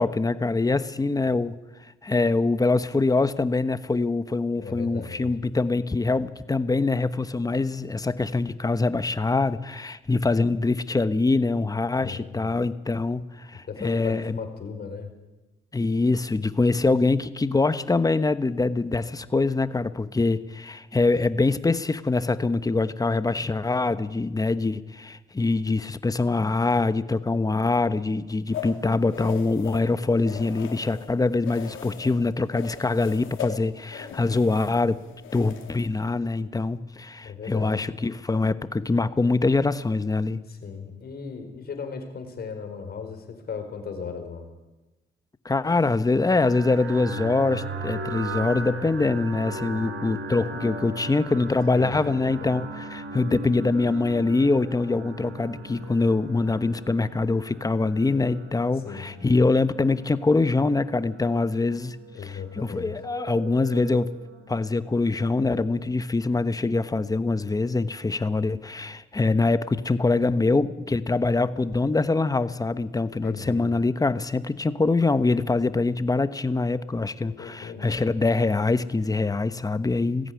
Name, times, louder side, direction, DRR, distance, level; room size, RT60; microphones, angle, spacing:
voice 1, 0.0-1.5 2.0-14.4 15.7-35.0 35.3-40.4 45.4-62.0 62.2-64.2 64.5-80.3, left 3 dB, 20° left, 13 dB, 1.1 m, -24 dB
voice 2, 4.6-5.3 12.0-12.4 13.7-15.1 37.2-37.7 40.5-44.5 51.7-52.3 58.8-59.1 62.1-62.9 73.2-73.6 77.4-78.0, left 6 dB, 50° left, 6 dB, 5.0 m, -36 dB
sound 1, 28.5-31.1 31.4-32.2 32.5-36.0, left 7 dB, 80° left, 3.7 m, -39 dB
sound 2, 46.1-65.8, right 2 dB, 75° right, 6.2 m, -39 dB
19.5 x 15.5 x 9.7 m, 1.1 s
cardioid pair, 90°, 20 cm